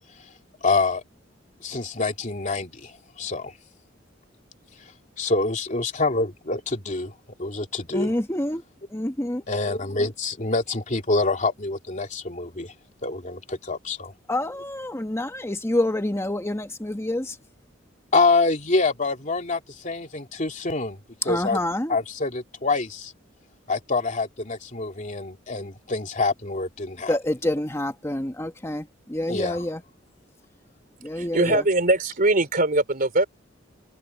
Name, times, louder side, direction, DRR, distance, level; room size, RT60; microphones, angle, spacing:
voice 1, 0.6-1.0 1.6-3.5 5.2-7.1 7.4-8.1 9.5-12.7 13.0-14.1 18.1-21.0 21.3-21.6 21.9-23.1 23.7-27.1 29.3-29.6 31.5-31.6, left 3 dB, 40° left, 2.9 m, -26 dB
voice 2, 7.9-8.6 8.9-9.4 14.3-17.4 21.2-22.0 27.1-29.8 31.0-31.6, left 1 dB, 15° left, 1.3 m, -27 dB
voice 3, 31.3-33.3, right 2 dB, 50° right, 3.5 m, -21 dB
open air
head